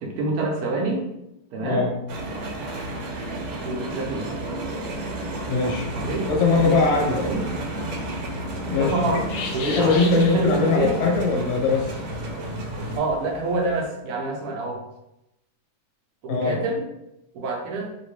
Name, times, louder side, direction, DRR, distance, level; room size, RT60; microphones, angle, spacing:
voice 1, 0.0-1.0 1.5-1.9 3.6-4.3 5.9-6.3 6.6-6.9 7.2-7.4 8.8-9.3 9.5-11.0 13.0-14.8 16.2-16.8 17.3-17.9, right 3 dB, 70° right, 1 dB, 1.1 m, -27 dB
sound 1, 2.1-13.0, right 2 dB, 90° right, 1.3 m, -32 dB
voice 2, 5.5-7.2 8.6-9.2 9.6-12.0 16.3-16.6, left 4 dB, 55° left, 0 dB, 0.9 m, -22 dB
sound 2, 5.9-13.8, left 5 dB, 75° left, 1.1 m, -39 dB
3.0 x 2.8 x 3.0 m, 0.87 s
omnidirectional pair, 1.8 m